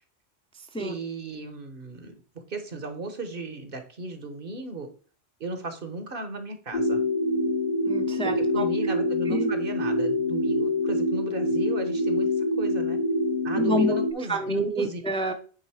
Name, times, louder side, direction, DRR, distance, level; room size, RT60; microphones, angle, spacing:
voice 1, 0.8-2.1 2.5-4.9 5.4-7.0 8.4-13.0 13.4-15.0, right 2 dB, 55° right, 7 dB, 1.3 m, -36 dB
sound 1, 6.7-14.1, left 1 dB, 45° left, 1.3 m, -25 dB
voice 2, 7.9-8.7 9.3-9.5 13.6-14.0 14.3-15.3, right 1 dB, 5° left, 4 dB, 0.7 m, -28 dB
8.9 x 3.7 x 4.9 m, 0.40 s
omnidirectional pair, 1.1 m